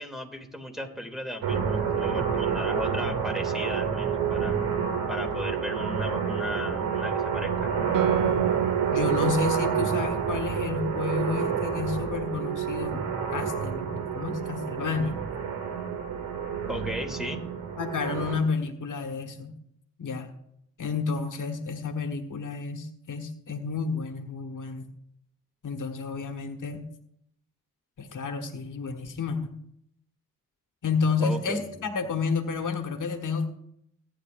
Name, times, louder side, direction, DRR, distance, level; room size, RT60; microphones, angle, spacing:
voice 1, 0.0-4.6 5.1-7.7 16.7-17.4 31.2-31.8, equal, ahead, 1 dB, 2.8 m, -36 dB
sound 1, 1.4-18.4, right 7 dB, 90° right, 1.7 m, -29 dB
Guitar, 7.9-12.9, right 10 dB, 70° right, 0.7 m, -32 dB
voice 2, 8.9-13.0 13.3-15.2 17.8-19.5 20.0-20.3 20.8-24.9 25.6-26.9 28.0-29.5 30.8-33.5, left 5 dB, 65° left, 4 dB, 1.4 m, -30 dB
18.0 x 9.9 x 2.6 m, 0.76 s
supercardioid pair, 40°, 34 cm